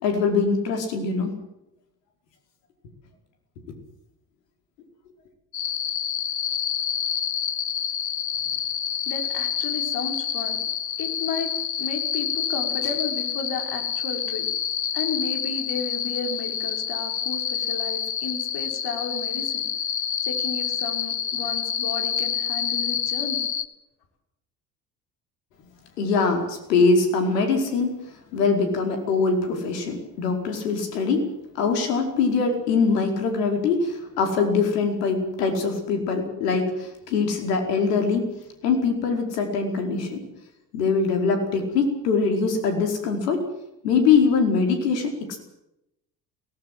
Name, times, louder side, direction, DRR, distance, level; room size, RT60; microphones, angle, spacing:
voice 1, 0.0-1.3 26.0-27.9 28.3-31.3 31.5-38.3 38.6-40.3 40.7-43.4 43.8-45.4, left 4 dB, 70° left, 4 dB, 5.0 m, -23 dB
sound 1, 5.5-23.7, left 8 dB, 90° left, 1.0 m, -28 dB
voice 2, 9.1-10.6 11.0-11.5 11.8-14.5 14.9-19.7 20.2-23.5, left 5 dB, 50° left, 4 dB, 5.5 m, -33 dB
24.0 x 18.5 x 7.8 m, 0.87 s
figure-of-eight pair, 60°, 49 cm